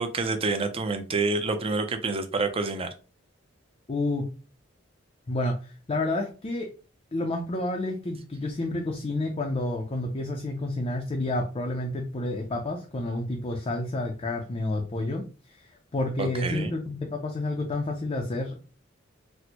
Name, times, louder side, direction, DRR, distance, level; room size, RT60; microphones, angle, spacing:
voice 1, 0.0-2.9 16.2-16.7, right 3 dB, 30° right, 8 dB, 0.5 m, -28 dB
voice 2, 3.9-4.3 5.3-6.7 7.1-15.7 15.9-18.6, left 2 dB, 30° left, 3 dB, 0.4 m, -30 dB
4.2 x 2.1 x 2.8 m, 0.36 s
head